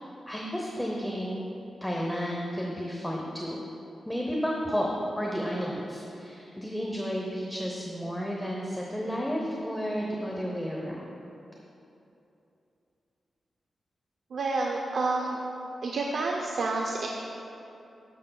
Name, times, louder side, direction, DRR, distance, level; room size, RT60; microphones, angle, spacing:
voice 1, 0.3-1.4 1.8-3.6 4.1-4.9 5.2-11.1, equal, 5° left, -2 dB, 0.8 m, -32 dB
voice 2, 14.3-15.4 15.8-17.1, right 3 dB, 70° right, 0 dB, 0.7 m, -29 dB
12.5 x 11.0 x 2.3 m, 2.8 s
wide cardioid pair, 125°, 0 cm